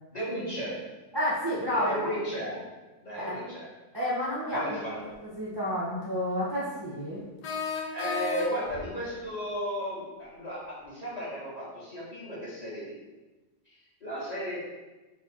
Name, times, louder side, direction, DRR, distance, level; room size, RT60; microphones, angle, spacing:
voice 1, 0.1-0.8 1.7-2.6 3.0-3.7 4.5-5.0 7.9-13.0 13.7-14.6, equal, 30° left, -8 dB, 1.1 m, -34 dB
voice 2, 1.1-2.0 3.1-3.4 3.9-4.8 5.2-7.3, equal, 30° right, -8 dB, 0.4 m, -30 dB
sound 1, 5.1-5.2 7.4-8.9, left 5 dB, 85° left, 1.2 m, -33 dB
4.1 x 2.5 x 4.1 m, 1.2 s
omnidirectional pair, 1.7 m